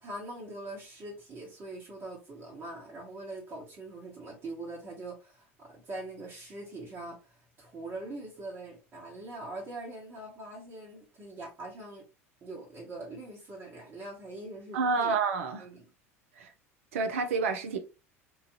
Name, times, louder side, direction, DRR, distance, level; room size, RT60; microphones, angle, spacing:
voice 1, 0.0-12.0 12.4-15.1 15.6-15.8, right 2 dB, 30° right, 1.1 m, -43 dB
voice 2, 14.7-15.7 16.4-16.5 16.9-17.8, right 4 dB, 65° right, 0.6 m, -29 dB
3.1 x 2.4 x 2.5 m
figure-of-eight pair, 75°, 8 cm